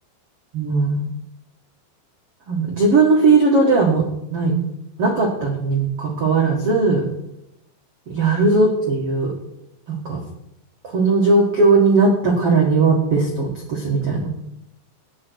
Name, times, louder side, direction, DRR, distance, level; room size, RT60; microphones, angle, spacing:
voice 1, 0.5-1.1 2.5-4.0 4.3-4.5 5.0-7.0 8.1-9.3 9.9-10.2 10.8-14.3, right 3 dB, 65° right, -1 dB, 1.4 m, -18 dB
16.5 x 10.5 x 4.7 m, 0.81 s
omnidirectional pair, 5.8 m